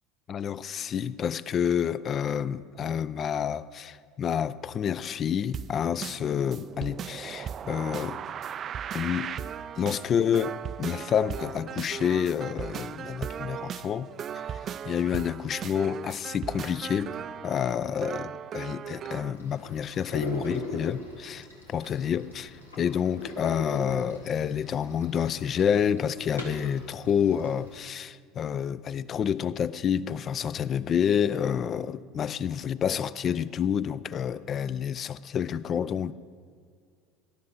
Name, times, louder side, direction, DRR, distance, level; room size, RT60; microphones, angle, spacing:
voice 1, 0.3-8.2 8.9-9.3 9.7-14.1 14.3-17.1 17.4-36.1, left 8 dB, 35° left, 0.4 m, -29 dB
sound 1, 5.5-19.3, right 8 dB, 35° right, 0.3 m, -37 dB
sound 2, 19.3-27.8, left 1 dB, 85° left, 1.7 m, -41 dB
18.5 x 11.5 x 4.0 m
figure-of-eight pair, 70°, 0 cm